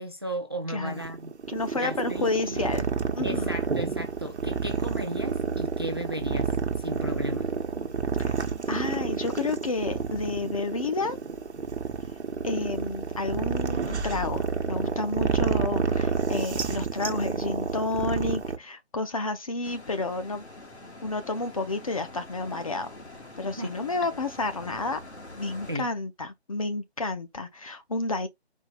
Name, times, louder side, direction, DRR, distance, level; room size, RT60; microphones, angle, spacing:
voice 1, 0.0-1.3 1.7-2.6 3.2-6.5 6.8-7.5 23.6-23.7 25.7-25.9, right 1 dB, 25° right, 0.4 m, -35 dB
voice 2, 0.7-1.0 1.5-2.9 3.2-3.5 8.2-8.3 8.7-11.2 12.4-20.4 21.0-22.9 23.4-25.0 25.4-28.3, left 3 dB, 35° left, 0.5 m, -30 dB
sound 1, 0.9-18.6, right 5 dB, 85° right, 0.9 m, -29 dB
sound 2, 19.6-25.8, left 2 dB, 80° left, 1.6 m, -45 dB
4.4 x 2.2 x 3.9 m
figure-of-eight pair, 150°, 33 cm